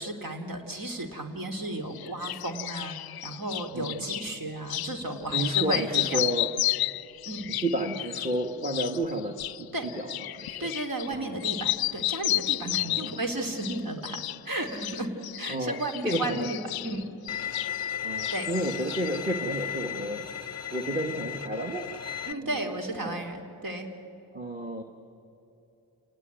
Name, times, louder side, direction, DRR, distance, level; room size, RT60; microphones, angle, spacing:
voice 1, 0.0-6.2 7.3-7.5 9.7-9.9 10.6-15.1 15.4-16.6 16.8-17.1 18.3-18.5 22.3-23.9, right 1 dB, 50° right, 3 dB, 3.1 m, -34 dB
sound 1, 1.9-4.2 4.7-4.9 5.2-11.1 11.4-13.2 13.6-14.4 14.7-17.9 18.2-19.2, left 15 dB, 60° left, 0.5 m, -32 dB
voice 2, 3.7-4.1 4.9-5.0 5.3-6.5 7.5-10.7 11.1-11.3 12.8-13.2 15.5-15.8 16.0-16.5 18.0-20.3 20.7-21.9 22.4-22.7 23.0-23.2 24.3-24.8, right 1 dB, 20° right, 3 dB, 1.9 m, -31 dB
Bowed string instrument, 17.3-22.3, left 9 dB, 35° left, 0.8 m, -35 dB
28.5 x 18.5 x 9.3 m, 3.0 s
cardioid pair, 50°, 42 cm